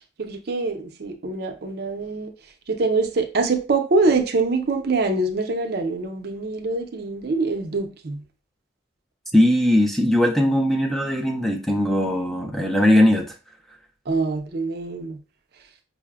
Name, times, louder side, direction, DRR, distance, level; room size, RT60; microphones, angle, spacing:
voice 1, 0.2-2.3 2.7-8.2 14.1-15.2, right 3 dB, 55° right, 0.5 m, -24 dB
voice 2, 9.3-13.3, left 1 dB, ahead, 0.3 m, -19 dB
5.5 x 2.1 x 2.3 m
head